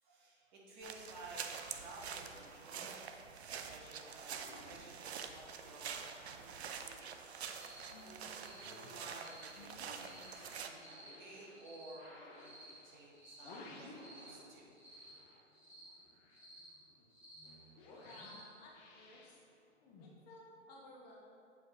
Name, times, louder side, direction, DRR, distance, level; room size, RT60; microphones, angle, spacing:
voice 1, 0.0-3.0 3.3-7.4 7.9-14.8, right 2 dB, 35° right, -4 dB, 1.5 m, -55 dB
sound 1, 0.8-10.7, right 7 dB, 60° right, 0.5 m, -47 dB
sound 2, 2.0-6.7 7.0-14.6 14.9-20.1, left 2 dB, 15° left, 0.5 m, -58 dB
Cricket, 7.6-7.9 8.3-8.7 9.1-9.5 9.9-10.3 10.7-11.1 11.5-11.9 12.3-12.7 13.1-13.5 13.9-14.3 14.7-15.1 15.5-15.9 16.3-16.7 17.1-17.5 17.9-18.4, right 1 dB, 5° right, 1.4 m, -57 dB
voice 2, 18.0-19.4 20.0-21.2, left 2 dB, 35° left, -4 dB, 1.1 m, -56 dB
7.9 x 4.8 x 3.1 m, 2.4 s
figure-of-eight pair, 125°, 37 cm